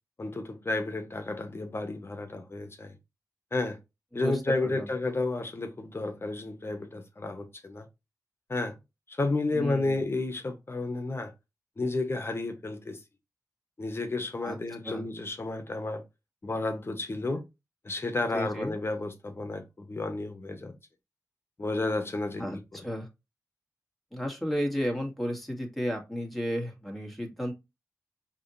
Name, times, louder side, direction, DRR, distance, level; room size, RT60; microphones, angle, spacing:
voice 1, 0.2-2.9 3.5-3.8 4.1-7.9 8.5-8.7 9.1-11.3 11.8-13.0 13.8-16.0 16.4-17.4 17.8-20.7 21.6-22.4, left 2 dB, 40° left, 1.1 m, -31 dB
voice 2, 4.1-4.9 9.5-10.0 14.4-14.6 14.8-15.1 18.3-18.7 22.4-23.1 24.1-27.5, equal, 5° left, 1.8 m, -33 dB
4.9 x 3.0 x 2.7 m
cardioid pair, 55°, 6 cm